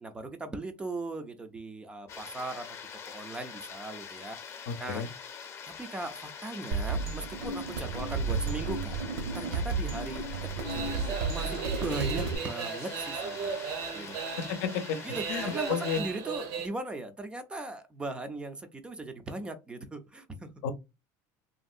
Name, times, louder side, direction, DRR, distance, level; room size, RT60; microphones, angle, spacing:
voice 1, 0.0-2.6 3.0-5.0 5.8-9.0 9.3-10.3 10.6-13.5 13.9-14.1 15.0-20.5, right 2 dB, 10° right, 0.4 m, -39 dB
sound 1, 2.1-16.0, left 7 dB, 35° left, 0.7 m, -44 dB
voice 2, 4.7-5.1 14.4-15.0 15.3-16.0 20.6-20.7, left 7 dB, 75° left, 0.6 m, -32 dB
sound 2, 6.7-12.4, right 4 dB, 85° right, 1.2 m, -32 dB
sound 3, 10.6-16.7, right 6 dB, 55° right, 0.7 m, -36 dB
3.0 x 2.6 x 2.4 m
cardioid pair, 150°, 8 cm